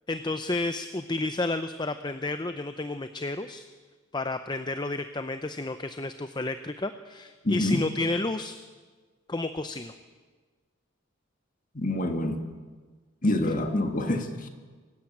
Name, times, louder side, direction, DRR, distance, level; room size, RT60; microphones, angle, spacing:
voice 1, 0.1-3.6 4.1-8.6 9.3-9.9, left 2 dB, 20° left, 9 dB, 0.6 m, -31 dB
voice 2, 7.4-7.9 11.7-12.4 13.2-14.5, left 1 dB, 40° left, 6 dB, 1.8 m, -26 dB
24.5 x 14.0 x 8.8 m, 1.4 s
head